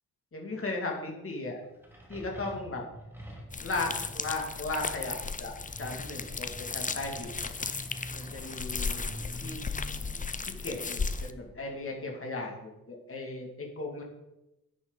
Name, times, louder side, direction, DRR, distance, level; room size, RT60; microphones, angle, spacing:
voice 1, 0.3-1.6 2.1-2.8 3.6-5.5 5.8-7.3 8.1-9.0 9.4-9.6 10.6-14.0, left 2 dB, 40° left, 0 dB, 2.7 m, -36 dB
sound 1, 1.6-12.0, equal, 5° right, 2.5 m, -47 dB
sound 2, 3.5-11.3, left 4 dB, 25° left, 0.5 m, -35 dB
12.0 x 9.5 x 4.2 m, 0.94 s
wide cardioid pair, 145°, 35 cm